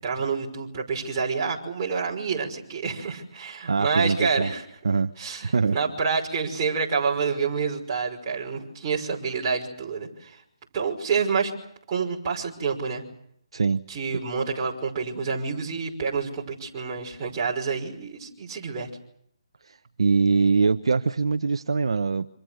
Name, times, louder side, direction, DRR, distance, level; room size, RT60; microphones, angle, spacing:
voice 1, 0.0-4.6 5.2-10.4 10.7-11.5 11.9-13.0 13.9-18.9, right 5 dB, 25° right, -2 dB, 5.7 m, -28 dB
voice 2, 3.7-4.5 4.8-5.1 5.5-5.8 13.5-13.8 19.6-22.3, right 4 dB, 65° right, 9 dB, 1.0 m, -23 dB
28.0 x 26.5 x 6.6 m, 0.70 s
figure-of-eight pair, 155°, 3 cm